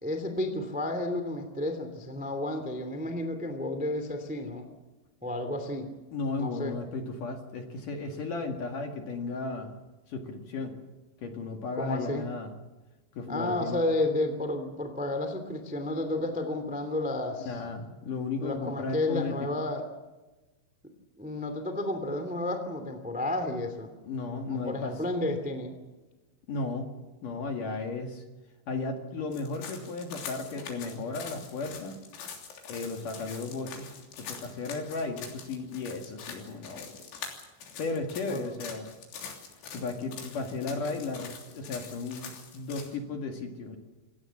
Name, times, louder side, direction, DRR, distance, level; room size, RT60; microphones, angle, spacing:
voice 1, 0.0-4.7 5.2-5.9 6.4-6.7 11.7-12.2 13.3-17.6 18.4-19.8 21.2-23.9 24.5-25.8 38.3-38.4, left 2 dB, 5° right, 7 dB, 1.2 m, -31 dB
voice 2, 6.1-9.7 10.1-10.8 11.2-12.6 13.1-13.8 17.4-19.7 24.0-24.9 26.5-26.9 27.2-28.2 28.7-32.0 32.7-33.9 34.2-37.0 37.8-38.9 39.7-42.3 42.5-43.8, left 3 dB, 55° left, 3 dB, 3.0 m, -35 dB
sound 1, 29.3-43.0, left 6 dB, 75° left, 5.6 m, -44 dB
28.0 x 17.0 x 7.3 m, 1.1 s
omnidirectional pair, 5.5 m